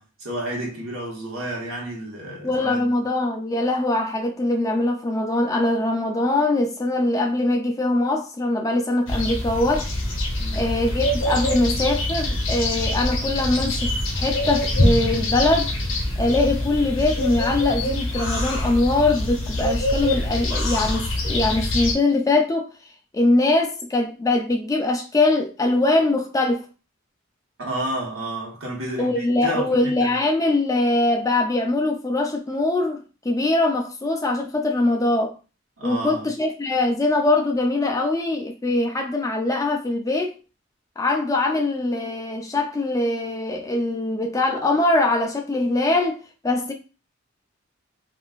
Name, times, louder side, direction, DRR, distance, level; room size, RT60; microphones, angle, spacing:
voice 1, 0.0-2.9 10.4-10.7 27.6-30.1 35.8-36.3, right 1 dB, 85° right, 1.2 m, -31 dB
voice 2, 2.4-9.9 10.5-15.7 16.2-22.7 23.1-26.6 29.0-35.3 35.8-40.3 41.0-46.2 46.4-46.7, left 2 dB, 15° left, 0.4 m, -22 dB
sound 1, 9.1-21.9, left 1 dB, 65° left, 0.8 m, -24 dB
3.7 x 2.5 x 2.3 m
head